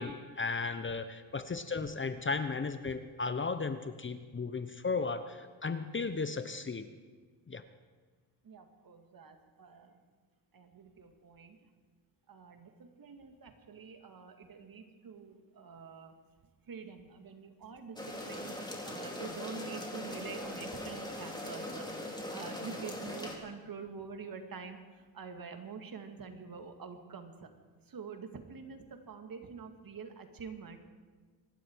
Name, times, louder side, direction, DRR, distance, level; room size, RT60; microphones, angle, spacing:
voice 1, 0.0-6.9 7.5-7.6, left 4 dB, 25° left, 10 dB, 1.0 m, -35 dB
voice 2, 8.4-10.0 10.5-11.6 12.3-16.2 16.7-21.9 22.3-27.5 27.8-30.8, right 5 dB, 45° right, 6 dB, 2.2 m, -46 dB
sound 1, 18.0-23.3, left 1 dB, 10° left, 3.9 m, -41 dB
25.5 x 11.5 x 4.8 m, 1.4 s
supercardioid pair, 75°, 48 cm